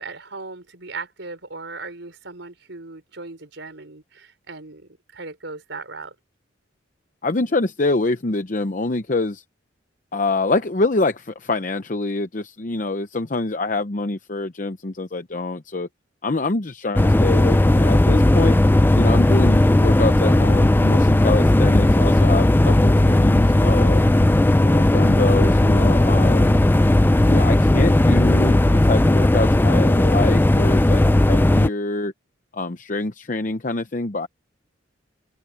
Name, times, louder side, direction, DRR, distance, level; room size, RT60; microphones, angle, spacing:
voice 1, 0.0-6.1, right 3 dB, 75° right, 4.5 m, -37 dB
voice 2, 7.2-9.4 10.1-15.9 16.2-18.6 18.9-24.0 24.6-26.6 27.3-32.1 32.5-34.3, left 2 dB, 45° left, 0.8 m, -25 dB
sound 1, 17.0-31.7, left 1 dB, 10° left, 0.3 m, -16 dB
open air
head